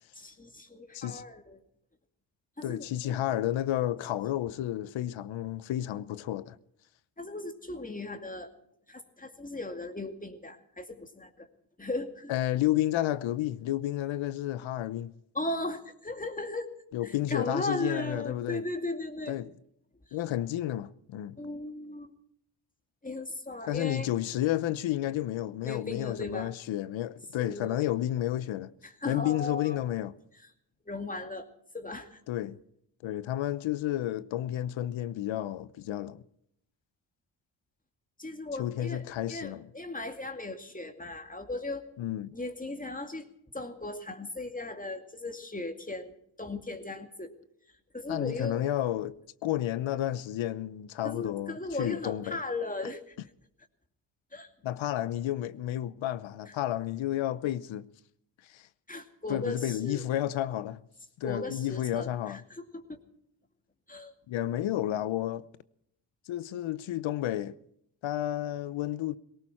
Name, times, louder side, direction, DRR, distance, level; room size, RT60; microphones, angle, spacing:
voice 1, 0.2-1.6 2.6-3.4 7.2-8.5 8.9-11.5 11.8-12.3 15.3-16.7 17.0-19.4 21.4-22.1 23.0-24.1 25.6-26.5 27.4-27.9 28.8-29.8 30.9-31.5 31.7-32.2 38.2-41.9 42.3-43.3 43.5-47.3 47.9-48.7 51.0-53.2 54.3-54.5 58.9-60.1 61.2-63.0 63.9-64.1, left 2 dB, 15° left, 2.4 m, -37 dB
voice 2, 2.6-6.6 12.3-15.1 16.9-18.6 19.3-19.5 20.1-21.4 23.7-28.7 29.1-30.1 32.3-32.6 33.0-36.2 38.6-39.7 42.0-42.3 48.1-49.2 49.4-52.4 54.6-57.9 58.4-58.7 59.3-60.8 61.2-62.4 64.3-65.5 66.3-67.6 68.0-69.2, left 13 dB, 75° left, 0.8 m, -31 dB
18.0 x 18.0 x 4.3 m
cardioid pair, 60°, 47 cm